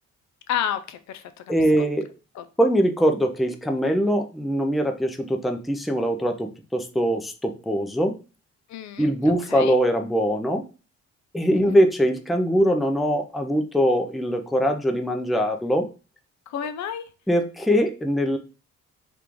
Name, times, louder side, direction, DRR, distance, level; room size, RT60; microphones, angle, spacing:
voice 1, 0.5-1.4 1.8-1.9 2.3-2.4 8.7-9.8 11.7-11.8 16.5-17.1, left 9 dB, 70° left, 10 dB, 0.5 m, -31 dB
voice 2, 1.5-2.1 2.6-8.2 9.0-10.6 11.3-15.9 17.3-18.4, equal, ahead, 4 dB, 0.4 m, -22 dB
3.0 x 2.5 x 3.4 m, 0.33 s
cardioid pair, 90°, 30 cm